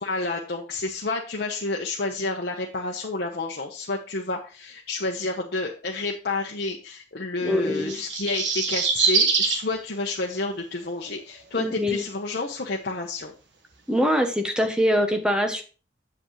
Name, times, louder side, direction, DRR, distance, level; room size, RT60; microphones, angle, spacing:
voice 1, 0.0-13.3, left 3 dB, 55° left, -1 dB, 1.0 m, -30 dB
voice 2, 7.4-8.0 11.5-12.0 13.9-15.6, equal, 5° right, 5 dB, 0.8 m, -23 dB
sound 1, 7.8-9.6 11.0-11.1, right 5 dB, 65° right, 1.4 m, -23 dB
8.0 x 7.5 x 3.1 m, 0.36 s
head